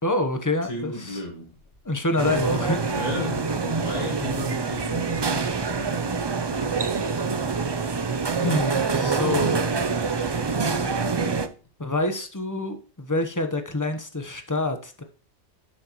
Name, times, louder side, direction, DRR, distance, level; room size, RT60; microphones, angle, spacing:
voice 1, 0.0-1.2 1.8-2.9 8.4-9.6 11.8-15.0, left 2 dB, 20° left, 1.0 m, -26 dB
voice 2, 0.6-1.6 2.9-6.2 6.4-6.8, left 2 dB, 35° left, 1.7 m, -35 dB
sound 1, 2.2-11.5, right 4 dB, 35° right, 0.4 m, -26 dB
11.5 x 6.4 x 3.0 m
omnidirectional pair, 1.1 m